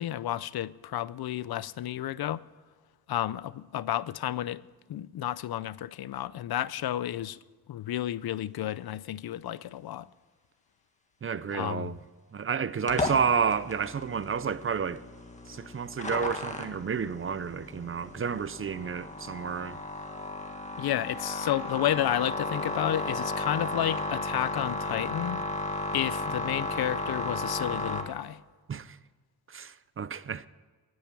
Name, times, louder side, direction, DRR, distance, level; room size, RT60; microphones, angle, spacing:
voice 1, 0.0-2.4 3.1-4.6 4.9-7.4 7.7-10.1 11.5-11.9 20.8-25.4 25.9-28.4, left 12 dB, 75° left, 0.6 m, -31 dB
voice 2, 11.2-12.0 12.3-15.0 15.5-19.8 28.7-29.0 29.5-30.5, right 6 dB, 35° right, 0.5 m, -30 dB
sound 1, 12.9-28.0, left 1 dB, 20° left, 1.6 m, -34 dB
18.5 x 9.4 x 6.0 m
wide cardioid pair, 145°, 37 cm